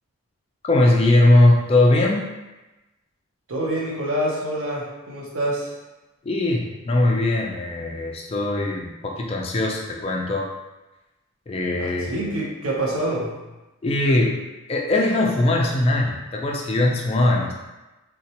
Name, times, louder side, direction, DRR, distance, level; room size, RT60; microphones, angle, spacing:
voice 1, 0.6-2.2 6.2-10.5 11.5-12.1 13.8-14.3 14.7-17.5, left 2 dB, 25° left, 0 dB, 0.3 m, -20 dB
voice 2, 3.5-5.7 11.8-13.4, right 1 dB, 75° right, -4 dB, 0.7 m, -26 dB
3.9 x 2.2 x 2.8 m, 1.1 s
head